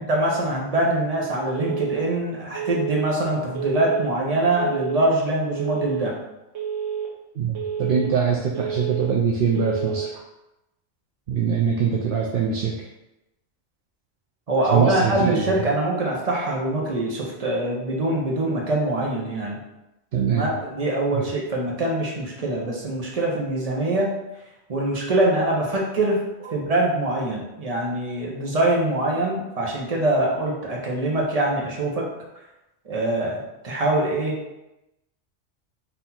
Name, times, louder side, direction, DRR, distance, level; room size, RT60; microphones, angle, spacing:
voice 1, 0.0-6.1 14.5-19.6 20.3-24.1 24.7-26.2 26.5-32.1 32.8-34.4, right 1 dB, 35° right, -2 dB, 0.9 m, -24 dB
Telephone, 1.5-2.1 2.5-3.1 3.5-4.1 4.5-5.1 5.5-6.1 6.5-7.1 7.5-8.1 8.5-9.1 9.5-10.1, right 8 dB, 90° right, 1.2 m, -29 dB
voice 2, 7.3-10.2 11.3-12.9 14.7-15.6 20.1-20.5 21.1-21.2, right 6 dB, 60° right, -1 dB, 0.6 m, -23 dB
4.2 x 2.7 x 4.2 m, 0.94 s
omnidirectional pair, 1.2 m